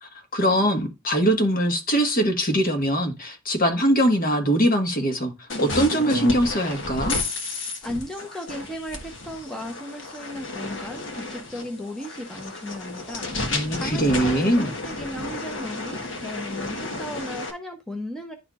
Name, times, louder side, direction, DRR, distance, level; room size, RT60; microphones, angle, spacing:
voice 1, 0.0-5.3 5.6-7.2 13.5-14.7, equal, 45° left, 1.4 m, -22 dB
sound 1, 5.5-17.5, left 2 dB, 65° left, 1.4 m, -32 dB
voice 2, 7.8-13.3 13.7-18.3, left 1 dB, ahead, 0.7 m, -36 dB
10.5 x 4.4 x 2.4 m
head